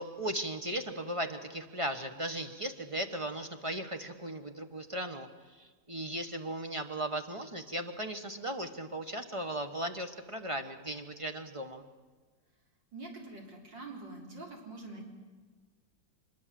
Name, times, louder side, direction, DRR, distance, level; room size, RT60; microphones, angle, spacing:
voice 1, 0.0-5.3 5.9-11.8, right 1 dB, 20° right, 6 dB, 1.1 m, -37 dB
voice 2, 12.9-15.0, right 2 dB, 80° right, 0 dB, 4.4 m, -45 dB
24.5 x 21.0 x 7.7 m, 1.4 s
omnidirectional pair, 1.9 m